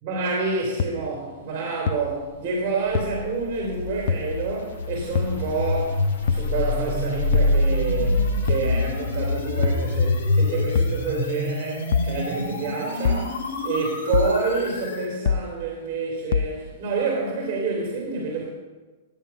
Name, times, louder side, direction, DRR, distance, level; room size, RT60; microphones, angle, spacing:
voice 1, 0.0-6.0 6.3-18.5, right 4 dB, 30° right, 2.8 m, -28 dB
sound 1, 0.8-0.9 1.9-2.0 2.9-3.0 4.1-4.2 5.1-5.3 6.3-6.5 7.3-7.5 8.5-8.7 9.6-9.8 10.7-11.0 11.9-12.1 13.0-13.3 14.1-14.4 15.3-15.5 16.3-16.5, left 6 dB, 55° left, 0.6 m, -22 dB
sound 2, 3.0-15.1, left 2 dB, 80° left, 2.4 m, -26 dB
13.5 x 8.8 x 5.8 m
supercardioid pair, 170°, 0 cm